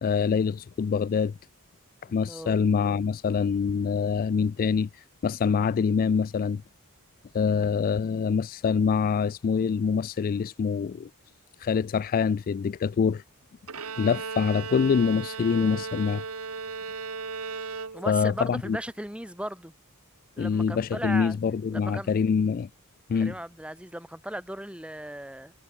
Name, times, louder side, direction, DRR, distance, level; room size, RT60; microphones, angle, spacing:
voice 1, 0.0-1.3 2.1-6.6 7.3-11.1 11.6-13.2 14.0-16.2 18.1-18.8 20.4-22.7 23.1-23.3, left 6 dB, 40° left, 0.3 m, -25 dB
voice 2, 2.1-2.6 17.9-19.7 20.4-21.4 21.7-22.1 23.2-25.5, right 1 dB, 5° right, 5.9 m, -37 dB
Bowed string instrument, 13.7-18.4, right 5 dB, 80° right, 1.6 m, -36 dB
head